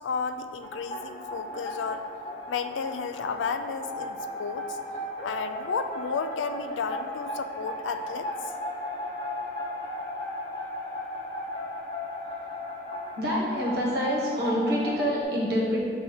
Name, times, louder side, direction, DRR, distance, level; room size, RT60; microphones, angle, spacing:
voice 1, 0.0-2.0 2.5-4.8 5.2-8.3, left 5 dB, 85° left, 9 dB, 0.4 m, -32 dB
sound 1, 0.6-15.2, equal, 30° left, 0.8 m, -36 dB
voice 2, 13.1-15.8, equal, 55° right, -4 dB, 1.4 m, -26 dB
6.6 x 2.7 x 5.6 m, 2.1 s
head